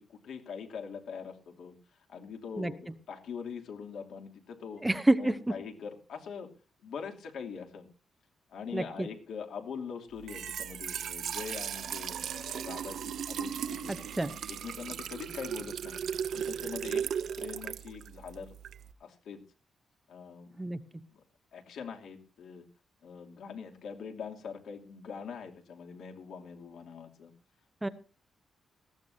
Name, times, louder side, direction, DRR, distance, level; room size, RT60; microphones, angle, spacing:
voice 1, 0.0-4.8 5.2-6.5 6.8-7.9 8.5-14.1 14.5-16.0 16.3-18.5 19.0-19.4 20.1-20.6 20.9-21.2 21.5-22.6 23.0-27.3, left 6 dB, 85° left, 2 dB, 2.7 m, -43 dB
voice 2, 4.8-5.4 8.7-9.1 13.9-14.3 20.6-20.8 27.8-27.9, right 1 dB, 10° right, 11 dB, 0.8 m, -28 dB
Trickle dribble / Fill (with liquid), 10.1-18.9, right 8 dB, 65° right, 0.7 m, -37 dB
19.5 x 15.5 x 2.7 m, 0.34 s
wide cardioid pair, 160°, 0 cm